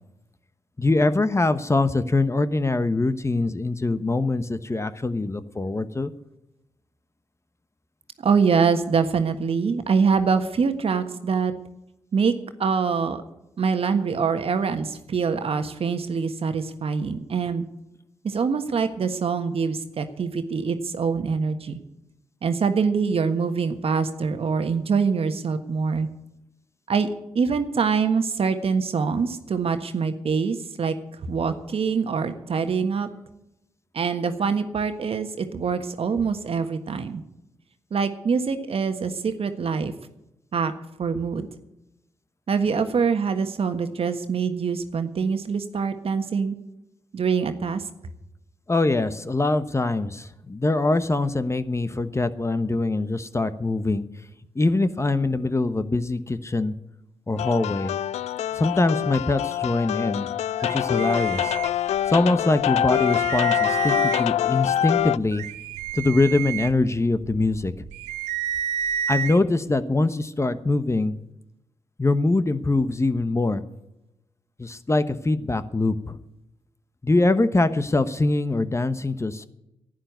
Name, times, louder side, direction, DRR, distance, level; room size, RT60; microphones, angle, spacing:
voice 1, 0.8-6.1 48.7-54.3 54.5-56.7 57.3-57.9 58.5-60.3 60.7-61.6 62.0-65.4 65.9-67.8 69.1-71.2 72.0-73.6 74.6-76.2 77.0-79.5, left 2 dB, 25° left, 12 dB, 1.1 m, -23 dB
voice 2, 8.2-11.5 12.1-12.3 12.6-13.2 13.6-17.6 18.2-21.8 22.4-26.1 26.9-27.1 27.3-30.9 31.3-33.1 33.9-37.2 37.9-39.9 40.5-40.7 41.0-41.5 42.5-46.6 47.1-47.8, right 5 dB, 55° right, 8 dB, 1.5 m, -24 dB
sound 1, 57.4-65.2, left 11 dB, 70° left, 0.4 m, -25 dB
sound 2, 60.6-62.2 62.6-62.7 62.9-64.5 65.0-69.4, right 9 dB, 90° right, 0.6 m, -30 dB
11.5 x 9.3 x 9.4 m, 0.90 s
hypercardioid pair, 40°, 12 cm